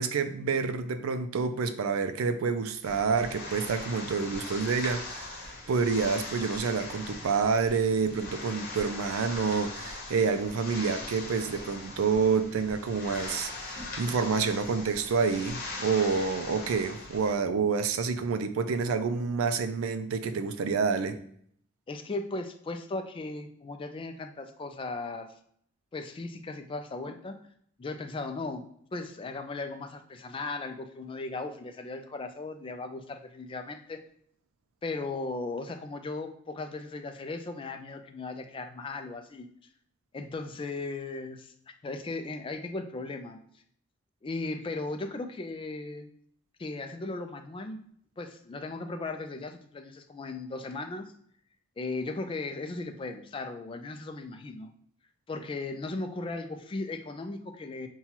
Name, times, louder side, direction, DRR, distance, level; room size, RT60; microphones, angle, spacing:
voice 1, 0.0-21.2, right 5 dB, 85° right, 10 dB, 0.4 m, -28 dB
sound 1, 2.8-17.3, left 2 dB, 45° left, 0.9 m, -40 dB
voice 2, 21.9-25.3 25.9-27.4 27.8-34.0 34.8-39.5 40.1-41.5 41.8-43.4 44.2-46.1 46.6-47.8 48.2-51.0 51.8-54.7 55.3-57.9, left 3 dB, 25° left, 7 dB, 0.3 m, -37 dB
5.6 x 2.2 x 2.9 m, 0.66 s
head